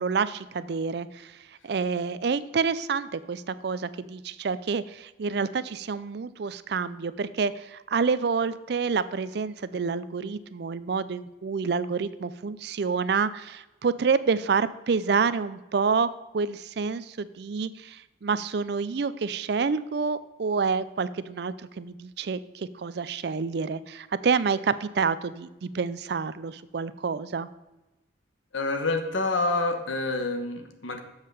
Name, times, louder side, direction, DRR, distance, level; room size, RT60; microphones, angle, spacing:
voice 1, 0.0-1.3 1.6-16.1 16.3-27.5, right 5 dB, 55° right, 15 dB, 0.4 m, -28 dB
voice 2, 28.5-31.0, left 2 dB, 75° left, 5 dB, 1.2 m, -27 dB
7.2 x 5.6 x 6.5 m, 1.0 s
head